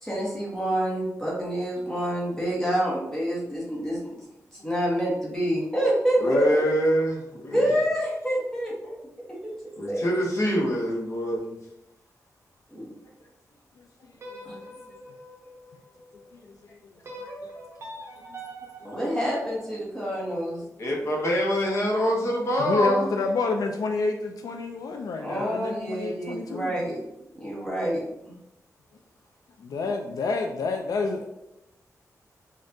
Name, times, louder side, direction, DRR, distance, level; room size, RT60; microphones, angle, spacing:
voice 1, 0.0-4.2 4.5-6.6 7.5-9.0 9.3-9.5 9.8-10.1 12.7-12.9 14.4-14.6 18.8-20.6 25.2-27.0 27.3-28.0, right 1 dB, 10° left, -6 dB, 1.2 m, -27 dB
voice 2, 6.2-7.7 9.8-11.5 20.8-23.1, equal, 50° left, -1 dB, 0.9 m, -25 dB
voice 3, 13.8-15.0 16.3-16.8 17.4-17.5 18.3-18.4 18.8-19.1 22.6-26.8 29.6-31.2, left 3 dB, 85° left, 4 dB, 0.4 m, -29 dB
sound 1, 14.1-16.3 17.0-20.2, right 1 dB, 45° right, 0.8 m, -43 dB
5.2 x 2.4 x 2.7 m, 0.86 s
wide cardioid pair, 165°, 6 cm